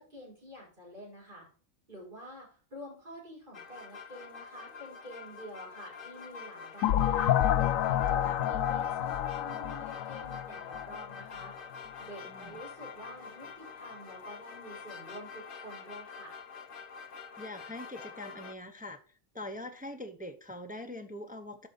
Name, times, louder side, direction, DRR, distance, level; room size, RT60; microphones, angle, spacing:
voice 1, 0.0-1.5 1.9-7.4 7.8-11.6 12.0-16.3, equal, 40° right, 5.4 m, -48 dB
sound 1, 3.5-18.5, left 5 dB, 50° left, 0.9 m, -46 dB
sound 2, 6.8-11.5, left 11 dB, 85° left, 1.0 m, -29 dB
voice 2, 17.4-19.0 19.3-21.7, left 1 dB, 10° right, 0.7 m, -43 dB
12.0 x 4.9 x 4.1 m
omnidirectional pair, 1.3 m